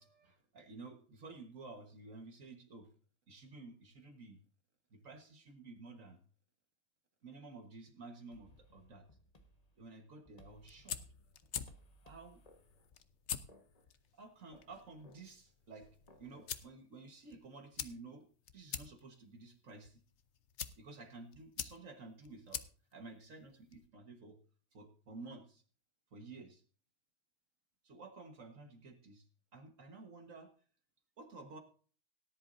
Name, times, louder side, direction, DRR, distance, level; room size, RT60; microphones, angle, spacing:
voice 1, 0.0-2.9 3.3-4.4 4.9-6.2 7.2-9.1 9.8-11.0 12.0-12.4 14.1-15.9 16.2-18.3 18.5-20.0 20.8-22.6 22.9-24.4 24.7-25.6 26.1-26.6 27.8-29.3 29.5-30.6 31.2-31.6, right 3 dB, 55° right, 5 dB, 1.8 m, -52 dB
sound 1, 8.3-16.6, left 1 dB, 25° left, 1.4 m, -64 dB
sound 2, 10.5-23.9, left 8 dB, 55° left, 0.9 m, -48 dB
18.0 x 10.5 x 2.6 m, 0.41 s
omnidirectional pair, 1.7 m